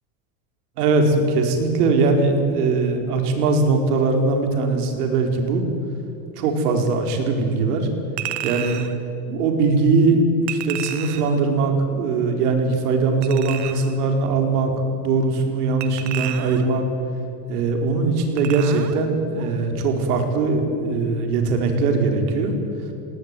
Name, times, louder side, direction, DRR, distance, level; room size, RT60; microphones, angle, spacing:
voice 1, 0.8-5.6 6.4-7.9 8.4-8.8 9.3-16.9 17.5-22.5, right 3 dB, 90° right, 4 dB, 4.6 m, -20 dB
Chink clink, 8.2-9.0 10.5-11.4 13.2-14.0 15.8-16.8 18.4-19.0 19.4-19.5, right 12 dB, 40° right, 1.6 m, -32 dB
20.5 x 18.0 x 9.7 m, 2.8 s
supercardioid pair, 155°, 45 cm